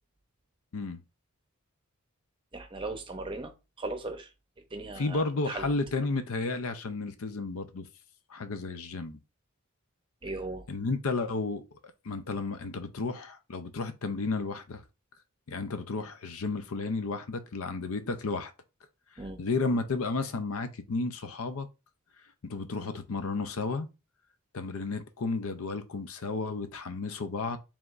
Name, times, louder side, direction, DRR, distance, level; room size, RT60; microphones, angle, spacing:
voice 1, 2.5-3.5 3.8-4.3 4.7-5.7 10.2-10.7 19.2-19.4, right 2 dB, 20° right, 0.7 m, -37 dB
voice 2, 5.0-7.9 8.3-9.2 10.7-11.8 12.0-14.8 15.5-18.5 19.4-21.7 22.4-23.9 24.5-27.6, left 3 dB, 70° left, 0.6 m, -32 dB
5.0 x 3.6 x 2.5 m
head